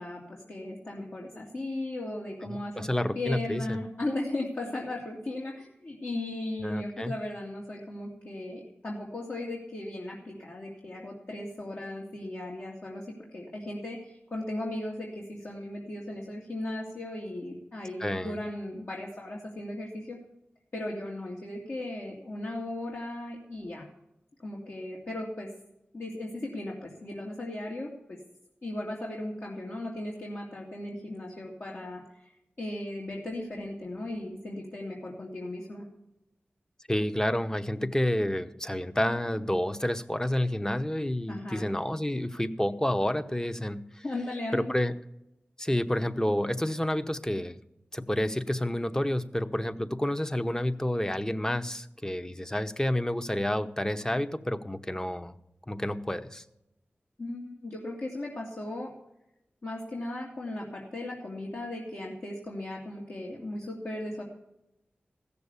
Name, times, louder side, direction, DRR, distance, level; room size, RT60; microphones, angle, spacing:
voice 1, 0.0-13.1 13.3-20.2 20.7-23.9 24.4-25.5 25.9-28.2 28.6-32.3 32.6-35.8 41.3-41.7 44.0-44.8 57.2-58.9 59.6-64.2, left 1 dB, 60° left, -3 dB, 2.5 m, -37 dB
voice 2, 2.5-3.8 6.6-7.2 18.0-18.4 36.9-44.0 44.5-44.9 45.6-47.6 47.9-55.3 55.7-56.4, left 1 dB, 15° left, 9 dB, 0.9 m, -29 dB
15.0 x 6.9 x 8.3 m, 0.87 s
cardioid pair, 45°, 4 cm